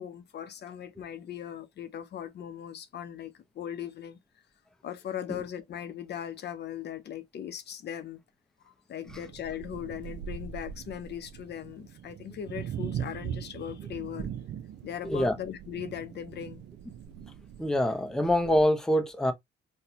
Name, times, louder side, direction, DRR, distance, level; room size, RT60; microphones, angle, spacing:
voice 1, 0.0-4.2 4.8-8.2 8.6-14.3 14.8-16.6, left 9 dB, 55° left, 0.6 m, -39 dB
sound 1, 9.1-18.6, right 9 dB, 60° right, 0.4 m, -41 dB
voice 2, 15.0-15.4 17.6-19.3, left 1 dB, 5° left, 0.6 m, -25 dB
4.1 x 2.2 x 2.7 m
cardioid pair, 90°, 20 cm